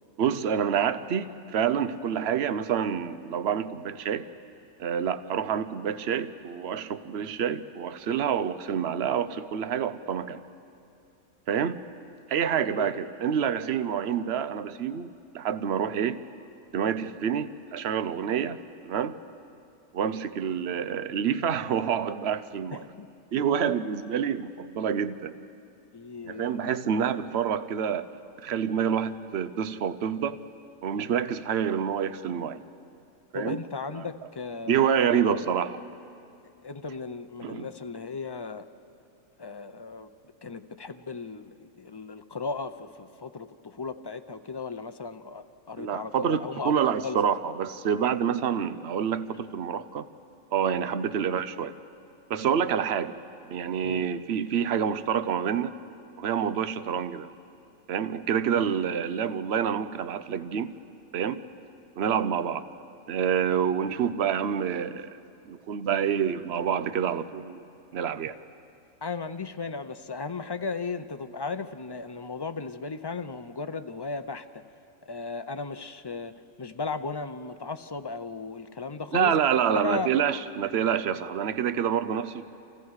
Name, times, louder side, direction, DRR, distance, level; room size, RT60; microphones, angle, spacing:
voice 1, 0.2-4.3 4.8-10.4 11.5-11.8 12.3-16.2 16.7-18.6 18.9-19.2 19.9-22.8 23.3-25.3 26.2-28.1 28.4-30.4 30.8-32.6 33.3-33.6 34.0-34.1 34.7-35.8 37.4-37.7 45.8-50.1 50.5-51.7 52.3-53.2 53.4-55.8 56.2-57.3 57.9-60.7 61.1-61.4 62.0-62.6 63.1-65.1 65.5-67.6 67.9-68.4 79.1-82.5, right 8 dB, 60° right, 12 dB, 1.0 m, -27 dB
voice 2, 12.8-13.1 22.7-23.1 25.9-26.8 33.3-35.3 36.6-38.7 39.4-40.1 40.4-46.7 47.0-47.3 53.8-54.1 58.5-58.7 69.0-74.6 75.1-76.3 76.6-79.3 79.7-80.1, left 4 dB, 30° left, 9 dB, 0.4 m, -36 dB
29.5 x 27.5 x 4.9 m, 2.6 s
omnidirectional pair, 1.4 m